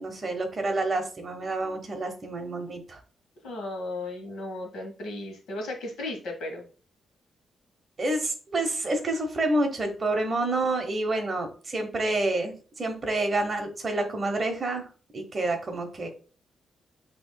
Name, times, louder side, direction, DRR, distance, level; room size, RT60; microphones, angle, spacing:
voice 1, 0.0-3.0 8.0-14.9 15.1-16.1, right 2 dB, 25° right, 4 dB, 0.9 m, -28 dB
voice 2, 3.4-6.7, left 2 dB, 80° left, 2 dB, 1.3 m, -35 dB
8.3 x 2.9 x 2.2 m, 0.38 s
wide cardioid pair, 175°, 0 cm